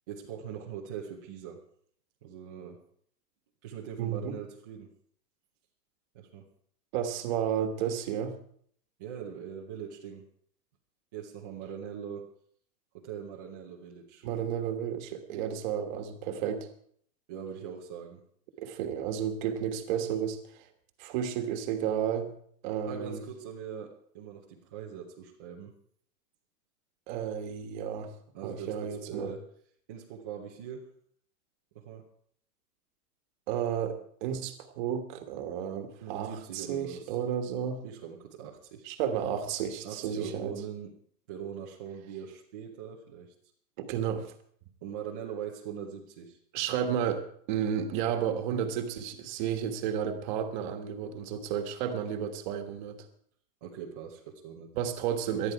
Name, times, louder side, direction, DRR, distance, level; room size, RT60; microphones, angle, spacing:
voice 1, 0.1-1.6 2.2-2.8 3.6-4.9 6.1-6.5 9.0-10.3 11.1-12.3 12.9-14.3 17.3-18.2 22.9-25.7 28.3-29.5 29.9-30.9 31.7-32.1 36.0-37.2 37.8-38.9 39.8-41.0 41.3-43.3 44.8-46.4 53.6-54.7, right 8 dB, 15° right, -4 dB, 0.5 m, -41 dB
voice 2, 4.0-4.4 6.9-8.4 14.2-16.7 18.6-20.7 21.0-22.4 22.6-23.2 27.1-28.1 28.4-29.3 33.5-37.8 38.8-40.5 43.8-44.3 46.5-53.1 54.7-55.5, right 8 dB, 30° right, 7 dB, 1.4 m, -32 dB
19.0 x 12.5 x 4.7 m, 0.62 s
hypercardioid pair, 170°, 50 cm